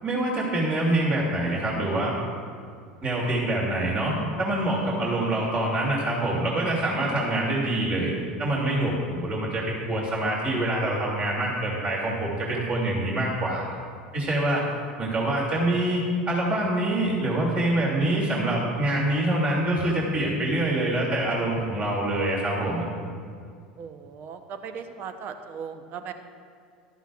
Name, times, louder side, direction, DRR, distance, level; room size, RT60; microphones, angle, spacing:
voice 1, 0.0-2.2 3.0-8.1 8.4-13.6 14.1-14.6 15.0-16.0 16.3-22.9, right 1 dB, 30° right, -4 dB, 2.8 m, -25 dB
voice 2, 23.8-26.1, right 7 dB, 50° right, 8 dB, 1.0 m, -38 dB
15.0 x 12.5 x 2.5 m, 2.2 s
hypercardioid pair, 80°, 4 cm